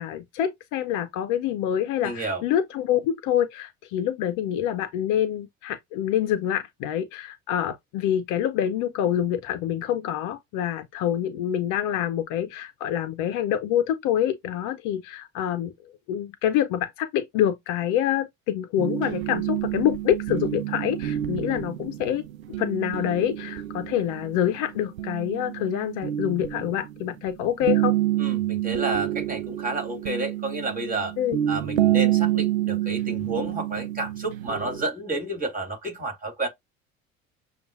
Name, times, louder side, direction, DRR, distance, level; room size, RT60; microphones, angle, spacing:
voice 1, 0.0-15.7 16.1-22.2 22.6-28.0 31.2-31.4, left 10 dB, 50° left, 0.8 m, -26 dB
voice 2, 2.0-2.4 28.2-31.1 31.5-36.5, right 2 dB, 20° right, 2.6 m, -30 dB
sound 1, 18.8-27.2 27.6-34.9, right 13 dB, 75° right, 0.5 m, -28 dB
6.7 x 2.5 x 2.5 m
figure-of-eight pair, 65°, 41 cm